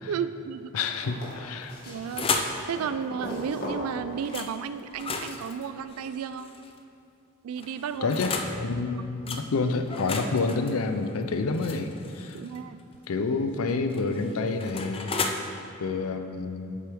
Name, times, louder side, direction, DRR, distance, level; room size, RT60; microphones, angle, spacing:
voice 1, 0.1-0.7 1.9-2.3 2.7-6.5 7.4-8.2 9.2-9.4 12.3-12.8, right 7 dB, 80° right, 12 dB, 0.3 m, -33 dB
voice 2, 0.7-1.8 8.0-12.4 13.1-15.1 15.8-16.8, left 3 dB, 75° left, 7 dB, 0.5 m, -28 dB
sound 1, 0.9-5.0 6.3-6.4, left 1 dB, 50° left, 1.8 m, -39 dB
sound 2, 1.6-2.6 4.3-4.5 4.9-6.8 7.6-8.6 9.3-9.4 9.9-12.6 13.7-15.3, left 4 dB, 25° left, 0.4 m, -33 dB
sound 3, 8.2-10.1 12.9-14.9, equal, 60° right, 1.6 m, -50 dB
8.3 x 7.4 x 3.5 m, 2.5 s
head